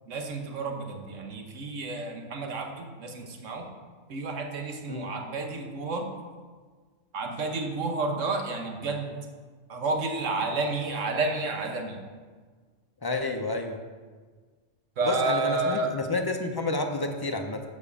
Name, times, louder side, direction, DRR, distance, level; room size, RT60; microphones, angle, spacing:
voice 1, 0.1-3.6 4.1-6.1 7.1-9.1 9.7-12.0 15.0-15.9, right 3 dB, 85° right, 3 dB, 1.4 m, -30 dB
voice 2, 13.0-13.8 15.0-17.6, left 2 dB, 30° left, 4 dB, 0.4 m, -30 dB
7.1 x 5.1 x 6.8 m, 1.5 s
omnidirectional pair, 1.3 m